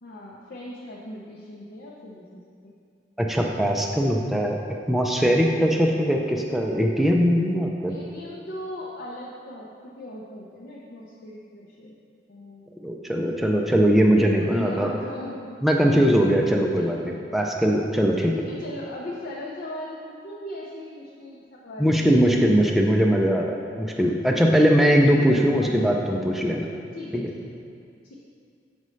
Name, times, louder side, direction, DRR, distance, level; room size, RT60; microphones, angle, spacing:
voice 1, 0.0-2.7 7.9-12.0 12.3-12.7 14.3-15.6 16.7-16.9 18.3-21.9 22.2-22.7 25.6-25.9 26.9-27.6 28.0-28.1, left 1 dB, 60° left, -4 dB, 0.6 m, -39 dB
voice 2, 3.2-4.6 4.9-7.9 12.8-14.9 15.6-17.0 17.3-18.3 21.8-26.7 27.1-27.2, equal, ahead, 0 dB, 0.4 m, -20 dB
6.4 x 5.3 x 3.1 m, 2.4 s
head